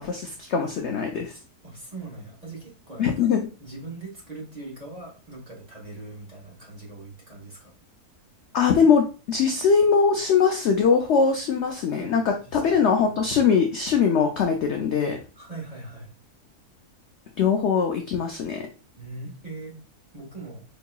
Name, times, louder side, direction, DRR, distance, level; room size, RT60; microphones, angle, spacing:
voice 1, 0.0-1.4 3.0-3.5 8.5-12.2 12.5-15.2 17.4-18.6, left 6 dB, 65° left, 3 dB, 0.7 m, -21 dB
voice 2, 1.6-3.1 3.6-7.7 12.0-12.1 12.4-12.8 13.0-13.1 15.4-16.1 19.0-19.7 20.1-20.6, right 2 dB, 25° right, -2 dB, 1.2 m, -40 dB
5.2 x 2.8 x 2.3 m, 0.33 s
omnidirectional pair, 1.7 m